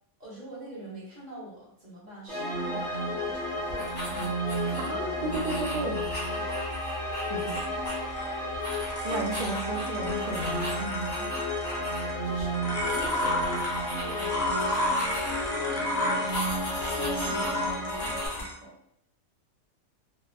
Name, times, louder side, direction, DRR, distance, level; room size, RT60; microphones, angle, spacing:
voice 1, 0.2-5.0 9.1-9.3 12.2-13.6 13.9-14.4 14.6-18.8, right 1 dB, 35° right, -6 dB, 0.9 m, -43 dB
sound 1, 2.3-18.3, equal, 5° left, 0.4 m, -32 dB
sound 2, 3.7-4.9 5.3-8.2 8.5-12.0 12.3-12.4 12.8-15.5 16.3-18.4, left 1 dB, 30° left, 0.8 m, -39 dB
sound 3, 3.9-18.5, left 1 dB, 60° left, 0.5 m, -34 dB
voice 2, 4.8-6.4 7.3-7.6 9.0-11.3, right 2 dB, 70° right, 0 dB, 0.4 m, -34 dB
2.8 x 2.1 x 2.4 m, 0.72 s
omnidirectional pair, 1.5 m